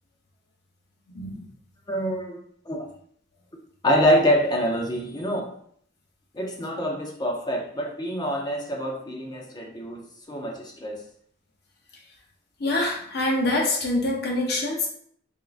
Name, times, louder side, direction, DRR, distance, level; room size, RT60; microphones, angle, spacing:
voice 1, 1.9-2.4 2.7-2.9 3.8-5.5 6.3-11.0, equal, 20° left, 0.5 m, -25 dB
voice 2, 12.6-14.9, left 2 dB, 50° left, 0.7 m, -25 dB
3.6 x 3.5 x 2.5 m
head